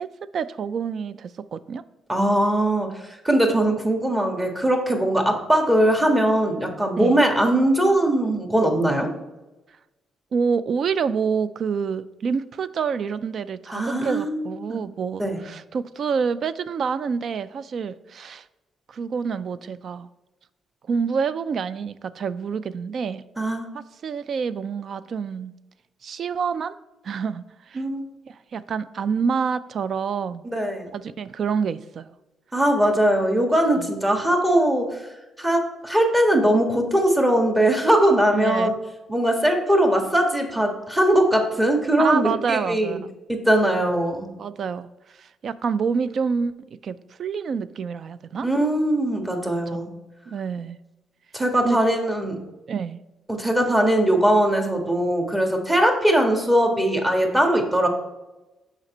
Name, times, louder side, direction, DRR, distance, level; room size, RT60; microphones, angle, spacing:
voice 1, 0.0-1.8 7.0-7.2 10.3-18.5 18.9-20.1 20.9-23.2 23.7-25.5 26.0-26.8 27.0-27.8 28.3-30.4 30.9-32.1 33.8-33.9 38.3-38.8 42.0-43.1 44.4-44.9 45.2-46.5 46.8-48.5 49.7-49.9 50.3-50.8 51.6-51.8 52.7-53.0, right 6 dB, 60° right, 16 dB, 0.3 m, -27 dB
voice 2, 2.1-2.9 3.2-9.1 13.7-14.4 14.7-14.8 15.2-15.4 23.4-23.7 27.7-28.1 30.4-30.9 32.5-35.0 35.4-38.7 39.1-43.0 43.3-44.3 48.4-49.9 51.3-52.4 53.3-57.9, right 1 dB, 15° right, 3 dB, 1.6 m, -20 dB
6.4 x 5.1 x 4.3 m, 1.1 s
supercardioid pair, 55°, 0 cm